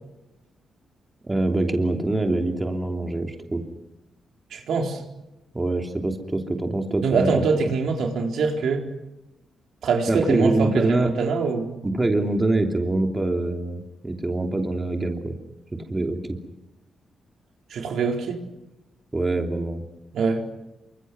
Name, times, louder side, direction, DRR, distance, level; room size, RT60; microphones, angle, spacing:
voice 1, 1.3-3.6 5.5-7.3 10.1-11.1 11.8-15.3 15.9-16.2 19.1-19.8, right 2 dB, 20° right, 3 dB, 3.1 m, -24 dB
voice 2, 4.5-5.0 7.0-8.8 9.8-11.8 17.7-18.4 20.1-20.5, right 4 dB, 75° right, 2 dB, 4.0 m, -24 dB
28.0 x 25.5 x 6.2 m, 0.93 s
cardioid pair, 110°, 0 cm